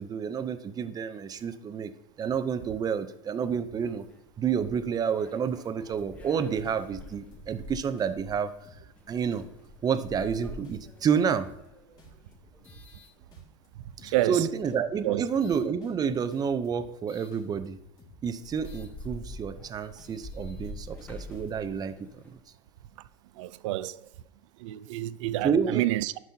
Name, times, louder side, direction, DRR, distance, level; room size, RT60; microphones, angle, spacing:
voice 1, 0.0-1.9 2.2-4.0 4.4-8.5 9.1-9.4 9.8-11.5 14.0-17.8 18.2-22.4 25.4-25.9, right 7 dB, 25° right, 0.6 m, -29 dB
sound 1, 3.8-13.8 14.4-15.7 17.1-17.3 17.9-18.0 18.2-22.4, left 1 dB, 10° left, 0.9 m, -47 dB
sound 2, 5.6-6.3 6.6-7.7 8.0-8.3 8.6-9.0 9.3-11.7 12.0-13.0 13.3-13.7 14.0-14.3 14.6-17.0 17.3-18.3 18.6-19.0 19.3-19.7 20.0-21.8, left 3 dB, 25° left, 2.6 m, -55 dB
voice 2, 14.0-14.5 15.0-15.2 23.4-24.0 24.6-26.2, right 15 dB, 75° right, 0.5 m, -28 dB
11.5 x 6.1 x 2.8 m
supercardioid pair, 120°, 16 cm